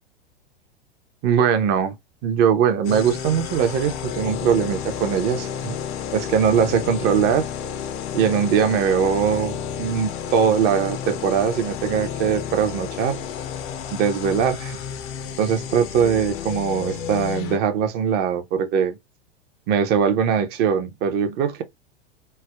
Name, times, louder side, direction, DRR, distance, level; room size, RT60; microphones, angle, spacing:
voice 1, 1.2-1.9 2.2-5.7 6.1-7.5 8.1-13.2 13.9-14.8 15.4-19.0 19.7-21.6, right 7 dB, 30° right, 0.6 m, -21 dB
sound 1, 2.8-17.6, left 8 dB, 30° left, 0.4 m, -31 dB
3.2 x 2.0 x 2.2 m
figure-of-eight pair, 95°, 32 cm